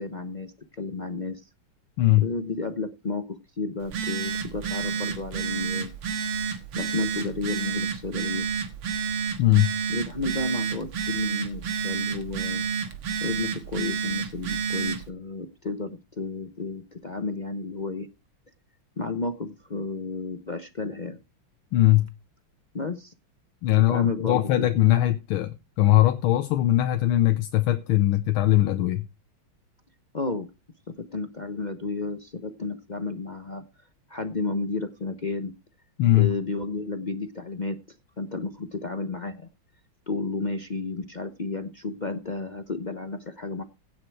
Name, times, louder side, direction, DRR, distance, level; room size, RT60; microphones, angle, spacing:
voice 1, 0.0-1.4 2.2-5.9 6.7-8.5 9.9-12.6 13.2-18.1 19.0-21.2 22.7-23.1 23.9-24.7 30.1-30.5 30.9-33.6 34.1-35.5 36.1-37.8 38.2-39.5 40.1-43.6, left 3 dB, 60° left, 0.4 m, -32 dB
Telephone, 3.8-15.1, right 6 dB, 85° right, 2.3 m, -30 dB
voice 2, 9.4-9.7 21.7-22.1 23.6-29.1 36.0-36.3, left 15 dB, 85° left, 1.7 m, -20 dB
16.5 x 6.7 x 4.7 m
omnidirectional pair, 2.3 m